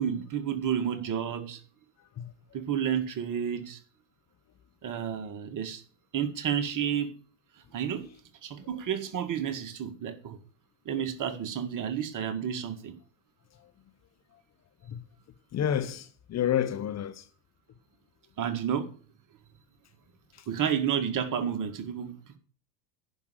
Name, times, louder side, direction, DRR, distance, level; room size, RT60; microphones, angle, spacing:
voice 1, 0.0-1.6 2.5-3.8 4.8-5.8 6.1-7.1 7.7-8.1 8.4-10.4 10.9-12.9 18.4-18.9 20.5-22.4, right 8 dB, 40° right, 1.9 m, -31 dB
voice 2, 15.5-17.2, left 9 dB, 30° left, 1.0 m, -29 dB
10.5 x 5.6 x 8.4 m
hypercardioid pair, 75°, 50 cm